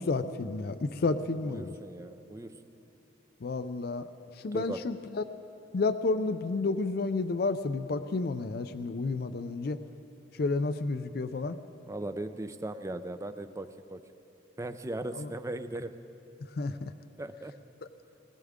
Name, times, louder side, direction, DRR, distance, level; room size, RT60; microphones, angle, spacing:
voice 1, 0.0-1.7 3.4-4.0 4.4-5.2 5.7-9.8 10.4-11.6 15.2-15.3 16.6-16.9, left 3 dB, 50° left, 11 dB, 0.4 m, -31 dB
voice 2, 1.4-2.6 4.5-4.8 11.9-14.0 14.6-15.9 17.2-17.5, right 1 dB, 15° right, 10 dB, 0.4 m, -38 dB
20.0 x 19.5 x 3.7 m, 2.9 s
head